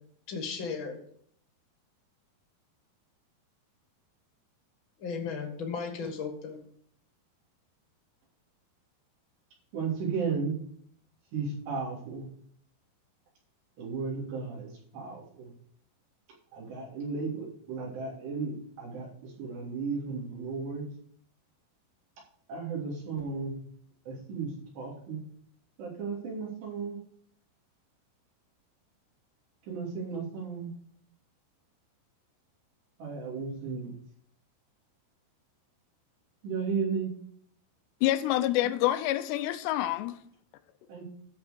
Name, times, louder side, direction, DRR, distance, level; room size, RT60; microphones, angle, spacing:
voice 1, 0.3-1.0 5.0-6.6, left 5 dB, 50° left, 1.6 m, -35 dB
voice 2, 9.7-10.5 11.3-12.3 13.8-15.5 16.5-20.8 22.5-23.6 24.1-25.2 25.8-27.0 29.7-30.7 33.0-33.9 36.4-37.1 40.9-41.1, right 5 dB, 75° right, 5.3 m, -34 dB
voice 3, 38.0-40.1, left 14 dB, 85° left, 2.9 m, -27 dB
13.0 x 4.7 x 6.8 m
omnidirectional pair, 4.9 m